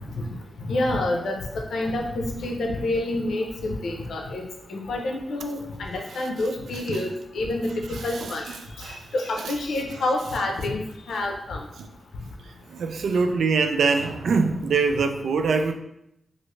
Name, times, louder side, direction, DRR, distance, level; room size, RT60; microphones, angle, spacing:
voice 1, 0.6-1.4 1.7-4.4 4.7-7.1 7.3-8.4 8.8-10.8 11.1-11.6, left 2 dB, 90° left, 2 dB, 0.6 m, -28 dB
voice 2, 6.7-7.0 7.9-9.1 9.4-9.5 11.8-11.9 12.7-15.7, right 4 dB, 85° right, 6 dB, 0.3 m, -24 dB
3.1 x 2.6 x 3.1 m, 0.80 s
wide cardioid pair, 125°, 0 cm